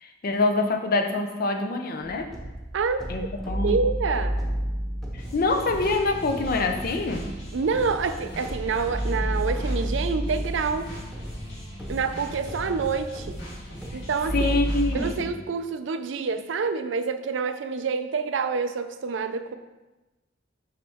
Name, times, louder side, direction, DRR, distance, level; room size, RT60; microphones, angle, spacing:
voice 1, 0.0-2.3 3.1-3.8 5.1-7.2 14.3-15.3, left 3 dB, 55° left, 5 dB, 0.6 m, -25 dB
sound 1, 2.0-15.0, equal, ahead, 1.0 m, -32 dB
voice 2, 2.7-4.4 7.5-10.9 11.9-13.4 13.9-14.5 14.9-19.5, right 5 dB, 80° right, 10 dB, 0.4 m, -27 dB
sound 2, 5.2-15.3, equal, 80° left, 1.9 m, -40 dB
5.7 x 5.3 x 3.5 m, 1.1 s
head